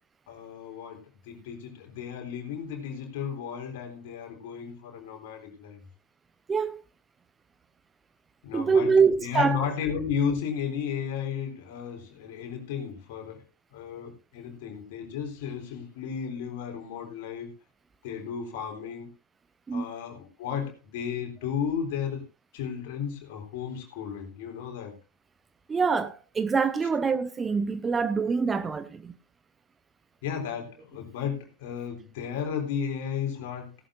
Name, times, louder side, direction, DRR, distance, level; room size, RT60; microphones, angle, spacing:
voice 1, 0.3-5.8 8.4-8.9 9.2-13.4 13.7-17.5 18.0-19.1 19.7-22.2 22.5-24.9 30.2-33.8, left 7 dB, 50° left, 4.0 m, -34 dB
voice 2, 6.5-6.8 8.5-9.6 19.7-19.9 25.7-29.2, right 5 dB, 15° right, 0.8 m, -25 dB
17.5 x 11.5 x 2.6 m
figure-of-eight pair, 90°, 0 cm